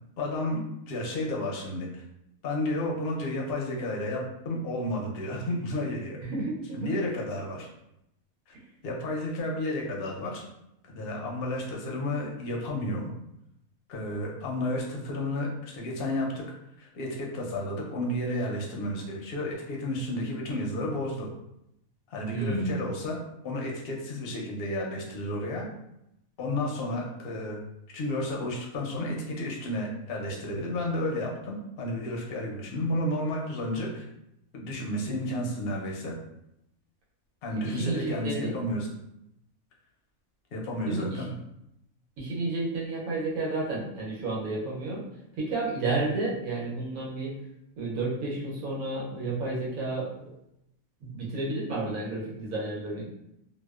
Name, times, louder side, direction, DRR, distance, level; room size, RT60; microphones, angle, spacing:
voice 1, 0.2-0.6 0.9-2.0 2.4-6.2 6.7-7.7 8.5-8.6 8.8-10.4 10.8-13.1 13.9-16.4 16.8-21.3 22.1-25.6 26.4-27.6 27.9-34.1 34.5-36.1 37.4-38.9 40.5-41.3, left 1 dB, 60° left, -1 dB, 0.6 m, -32 dB
voice 2, 6.3-6.9 22.3-22.8 37.6-38.5 40.9-41.3 42.2-45.0 45.4-47.3 47.8-50.1 51.0-53.0, right 2 dB, 85° right, -4 dB, 1.2 m, -31 dB
2.7 x 2.1 x 2.3 m, 0.82 s
omnidirectional pair, 1.4 m